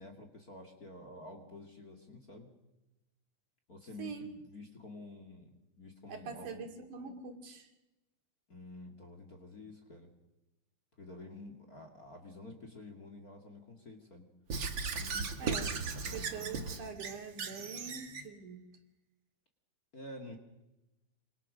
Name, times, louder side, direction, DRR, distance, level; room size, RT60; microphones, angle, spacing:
voice 1, 0.0-2.5 3.7-6.6 8.5-10.1 11.0-14.3 15.0-16.8 19.9-20.4, left 2 dB, 30° left, 4 dB, 2.5 m, -50 dB
voice 2, 4.0-4.4 6.1-7.7 15.4-15.7 16.1-18.6, right 5 dB, 65° right, 4 dB, 3.9 m, -44 dB
Squeak / Writing, 14.5-18.3, right 5 dB, 40° right, 2.1 m, -37 dB
26.5 x 25.5 x 6.4 m, 0.97 s
omnidirectional pair, 3.9 m